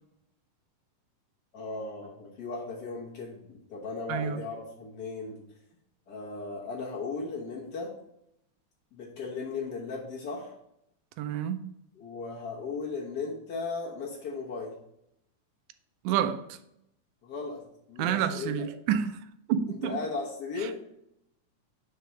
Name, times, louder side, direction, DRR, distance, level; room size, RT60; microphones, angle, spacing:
voice 1, 1.5-5.4 6.1-7.9 8.9-10.5 11.9-14.7 17.2-17.6 17.9-18.7 19.8-20.7, left 4 dB, 70° left, 0.9 m, -36 dB
voice 2, 4.1-4.4 11.2-11.6 16.1-16.6 18.0-19.1 19.5-20.0, right 9 dB, 85° right, 2.0 m, -28 dB
5.1 x 4.6 x 5.6 m
omnidirectional pair, 3.6 m